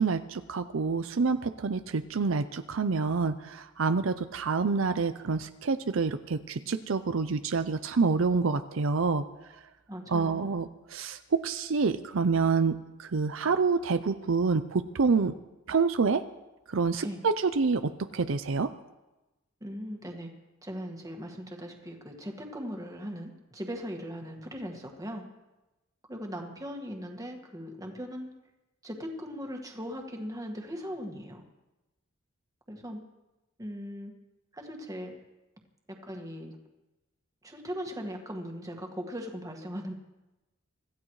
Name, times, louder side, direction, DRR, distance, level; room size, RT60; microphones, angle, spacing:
voice 1, 0.0-9.2 10.1-12.7 13.0-15.3 15.7-16.2 16.7-18.7, right 4 dB, 70° right, 10 dB, 0.6 m, -27 dB
voice 2, 9.9-10.6 17.0-17.2 19.6-20.3 20.6-25.3 26.1-28.3 28.8-31.4 32.7-33.0 33.6-34.1 34.5-35.1 35.9-36.6 37.4-39.9, equal, 15° right, 2 dB, 1.8 m, -39 dB
25.5 x 14.5 x 3.2 m, 1.0 s
head